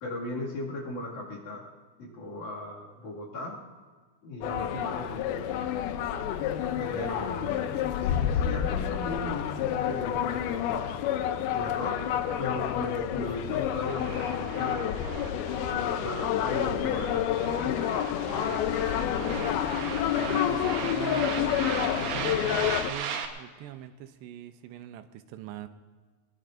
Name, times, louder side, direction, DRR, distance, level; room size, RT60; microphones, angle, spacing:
voice 1, 0.0-1.6 2.0-3.6 4.2-5.5 6.8-10.9 11.5-12.1 12.4-15.0 15.7-17.3 17.6-17.8, left 2 dB, 50° left, -4 dB, 3.3 m, -37 dB
sound 1, 4.4-22.9, left 10 dB, 75° left, 2.4 m, -29 dB
voice 2, 4.5-4.9 6.7-7.2 18.4-18.8 19.1-19.4 20.1-25.7, right 11 dB, 90° right, 9 dB, 2.9 m, -42 dB
sound 2, 13.9-23.3, right 7 dB, 70° right, 2.9 m, -37 dB
21.5 x 21.0 x 2.6 m, 1.5 s
omnidirectional pair, 4.8 m